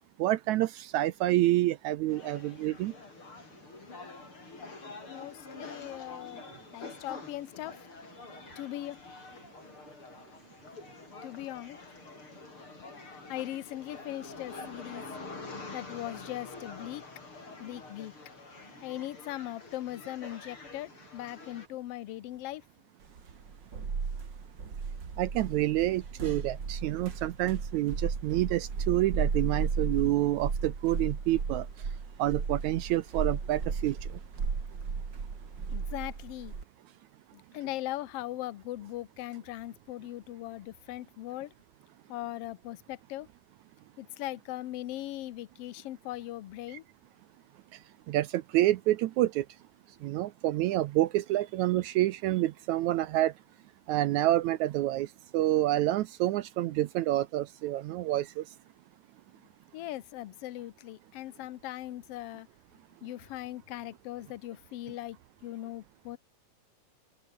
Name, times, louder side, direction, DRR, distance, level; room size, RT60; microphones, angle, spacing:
voice 1, 0.2-2.9 25.2-31.7 32.2-34.0 48.1-49.5 50.0-53.3 53.9-55.1 55.3-58.4, right 15 dB, 75° right, 1.8 m, -28 dB
sound 1, 2.1-21.7, left 3 dB, 40° left, 6.4 m, -47 dB
voice 2, 5.1-6.5 6.7-7.9 8.5-9.0 11.2-11.8 12.9-15.0 15.7-17.0 17.6-18.1 18.8-22.6 35.7-36.5 37.3-41.5 42.1-43.3 44.0-46.8 59.7-62.5 63.0-66.2, left 15 dB, 75° left, 1.4 m, -39 dB
sound 2, 23.2-36.6, right 5 dB, 35° right, 2.9 m, -34 dB
open air
omnidirectional pair, 3.8 m